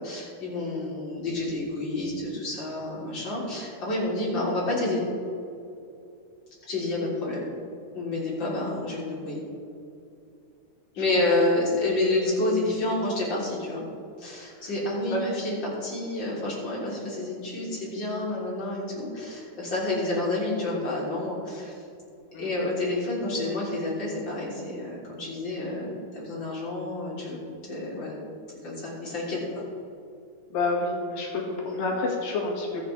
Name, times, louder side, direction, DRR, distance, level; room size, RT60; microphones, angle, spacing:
voice 1, 0.0-5.0 6.6-7.4 7.9-9.4 11.0-13.8 14.2-21.7 22.4-27.4 27.7-28.2 28.6-29.6 31.6-31.9, left 2 dB, 35° left, -6 dB, 4.1 m, -29 dB
voice 2, 30.5-32.8, left 2 dB, 75° left, -1 dB, 3.7 m, -28 dB
22.0 x 8.3 x 3.5 m, 2.6 s
omnidirectional pair, 4.0 m